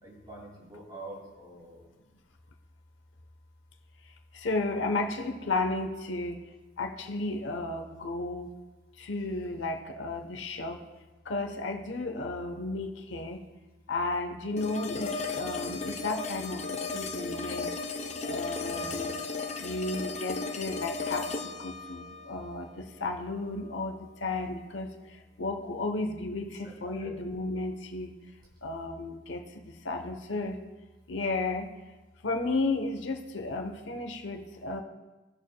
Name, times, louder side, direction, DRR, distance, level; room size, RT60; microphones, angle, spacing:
voice 1, 0.0-1.9 18.6-19.2 26.6-27.1, right 1 dB, 25° right, -3 dB, 2.4 m, -46 dB
voice 2, 4.3-6.4 6.8-8.5 9.0-10.8 11.3-13.4 13.9-17.7 18.2-19.1 19.6-28.1 28.6-30.6 31.1-31.7 32.2-34.8, left 2 dB, 85° left, 5 dB, 0.9 m, -33 dB
sound 1, 14.6-23.6, left 4 dB, 35° left, 0.6 m, -35 dB
18.0 x 6.6 x 2.2 m, 1.1 s
head